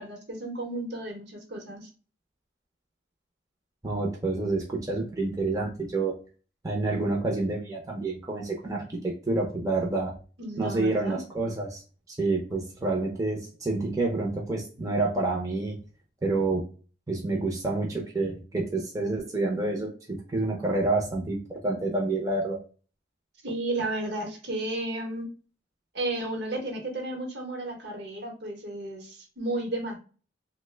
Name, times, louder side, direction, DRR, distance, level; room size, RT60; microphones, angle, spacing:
voice 1, 0.0-1.9 10.4-11.2 23.4-25.3 25.9-30.0, right 2 dB, 65° right, 2 dB, 0.9 m, -33 dB
voice 2, 3.8-6.1 6.6-10.1 10.6-11.8 12.1-15.8 16.2-16.6 17.1-22.6, right 2 dB, 20° right, -1 dB, 0.5 m, -28 dB
2.8 x 2.1 x 3.2 m, 0.37 s
head